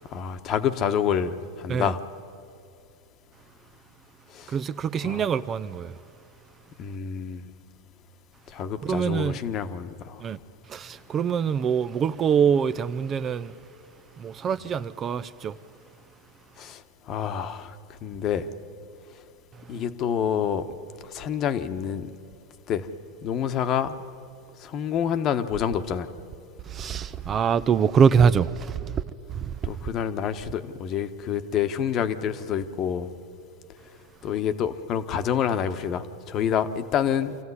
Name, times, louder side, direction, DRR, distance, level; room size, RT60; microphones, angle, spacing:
voice 1, 0.1-2.0 4.3-4.5 5.0-5.3 6.8-7.5 8.5-10.2 16.6-16.8 17.1-17.7 18.0-18.5 19.7-20.7 21.0-22.1 22.7-22.9 23.2-23.9 24.6-26.1 29.6-33.1 34.2-37.4, left 8 dB, 40° left, 1.2 m, -27 dB
voice 2, 4.5-5.9 8.8-9.4 10.2-10.4 10.7-13.5 14.2-15.5 26.7-29.0 29.3-29.5, right 7 dB, 30° right, 0.5 m, -24 dB
26.0 x 14.0 x 9.8 m
hypercardioid pair, 125°, 0 cm